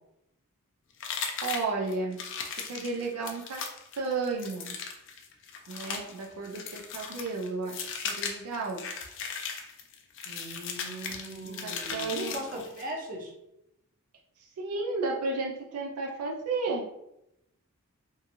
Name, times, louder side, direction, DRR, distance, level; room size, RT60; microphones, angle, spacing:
sound 1, 1.0-12.9, left 6 dB, 55° left, 0.4 m, -38 dB
voice 1, 1.4-2.2 2.7-3.7 4.0-4.7 5.7-8.9 11.4-12.3 14.6-16.9, right 3 dB, 75° right, 0 dB, 0.4 m, -33 dB
voice 2, 10.3-13.3, right 1 dB, 40° right, -1 dB, 0.6 m, -39 dB
2.7 x 2.5 x 2.6 m, 0.83 s
head